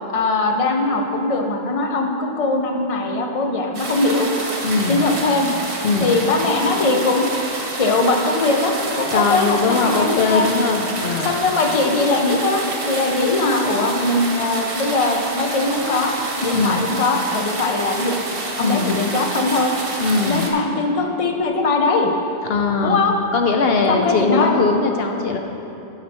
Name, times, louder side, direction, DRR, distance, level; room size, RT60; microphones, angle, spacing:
voice 1, 0.1-4.3 4.9-5.5 6.0-7.3 7.8-10.5 11.2-12.6 12.9-16.1 16.4-18.2 18.6-19.7 20.3-22.1 22.8-23.1 23.9-24.5, left 3 dB, 35° left, 2 dB, 0.8 m, -20 dB
sound 1, 3.7-20.5, right 2 dB, 65° right, 1.4 m, -28 dB
voice 2, 4.6-5.1 5.8-6.2 9.1-11.3 16.5-16.9 18.6-19.0 20.0-20.5 22.5-23.0 23.3-25.4, left 4 dB, 70° left, 4 dB, 0.9 m, -20 dB
13.0 x 6.0 x 4.2 m, 2.9 s
omnidirectional pair, 1.0 m